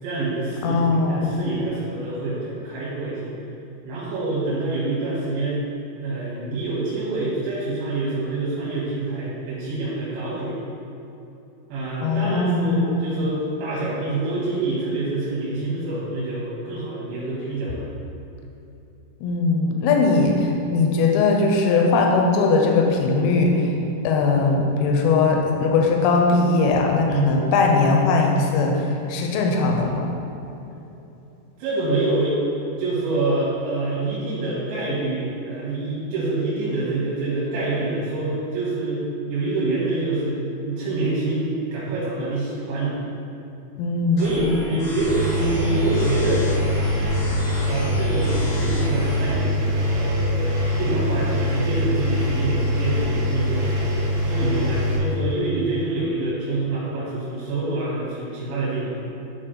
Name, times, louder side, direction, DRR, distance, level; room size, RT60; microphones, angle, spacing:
voice 1, 0.0-3.3 3.9-5.6 6.0-10.6 11.7-17.8 27.1-27.4 31.6-32.4 32.8-41.4 41.7-43.0 44.2-46.4 47.7-49.6 49.9-59.0, right 2 dB, 90° right, -7 dB, 3.6 m, -26 dB
voice 2, 0.6-1.5 12.0-13.1 19.2-23.7 24.0-30.1 43.8-44.6, left 3 dB, 80° left, 1 dB, 2.7 m, -20 dB
sound 1, 44.2-49.2, left 1 dB, 55° left, 1.4 m, -33 dB
Engine, 45.0-55.0, equal, 70° right, 1.6 m, -23 dB
11.0 x 4.1 x 3.9 m, 2.9 s
omnidirectional pair, 4.9 m